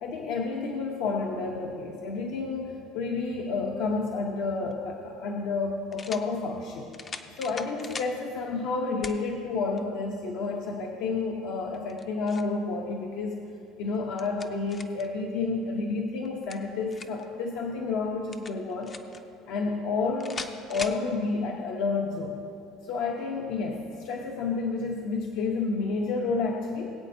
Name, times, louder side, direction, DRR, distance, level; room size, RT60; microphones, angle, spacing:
voice 1, 0.0-6.9 7.4-13.4 13.8-18.9 19.5-22.4 22.8-26.9, left 4 dB, 65° left, 0 dB, 0.9 m, -30 dB
sound 1, 4.7-4.8 5.9-6.3 6.9-8.1 9.0-9.2 9.8-9.9 11.7-12.5 13.9-15.1 16.2-17.3 18.3-19.2 20.2-21.0, left 4 dB, 20° left, 0.5 m, -40 dB
21.0 x 8.5 x 2.7 m, 2.5 s
cardioid pair, 155°, 0 cm